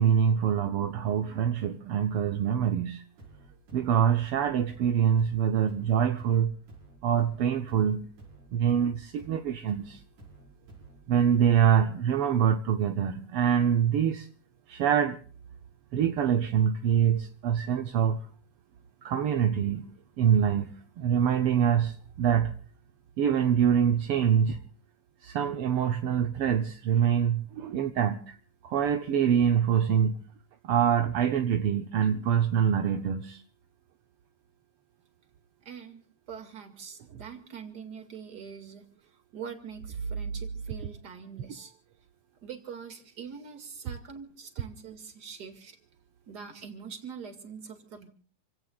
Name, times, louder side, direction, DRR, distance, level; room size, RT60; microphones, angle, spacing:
voice 1, 0.0-3.0 3.7-6.5 7.0-8.1 8.5-10.0 11.1-14.3 14.7-15.2 15.9-18.2 19.0-19.8 20.2-20.7 21.0-22.5 23.2-24.6 25.2-28.4 28.6-30.2 30.6-33.4 37.1-37.2, right 8 dB, 65° right, 1.5 m, -25 dB
sound 1, 3.2-11.7, right 2 dB, 90° right, 6.9 m, -53 dB
voice 2, 35.7-36.0 36.3-38.9 39.3-41.7 42.4-45.8 46.3-48.1, right 6 dB, 35° right, 2.5 m, -41 dB
28.5 x 16.5 x 2.4 m
omnidirectional pair, 3.4 m